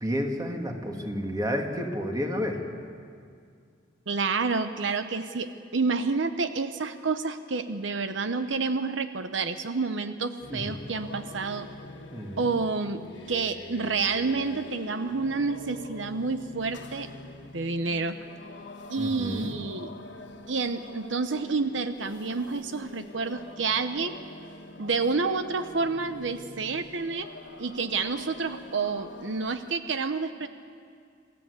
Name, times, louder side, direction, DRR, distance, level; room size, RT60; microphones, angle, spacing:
voice 1, 0.0-2.6 10.5-10.9 12.1-12.5 19.0-19.5, equal, 20° right, 2 dB, 2.2 m, -31 dB
voice 2, 4.1-11.7 12.4-17.1 17.5-18.2 18.9-19.9 20.5-24.2 24.8-27.3 27.6-30.5, right 4 dB, 85° right, 10 dB, 0.9 m, -29 dB
sound 1, 10.4-29.7, left 2 dB, 70° left, 1.6 m, -45 dB
28.0 x 15.5 x 8.3 m, 2.2 s
head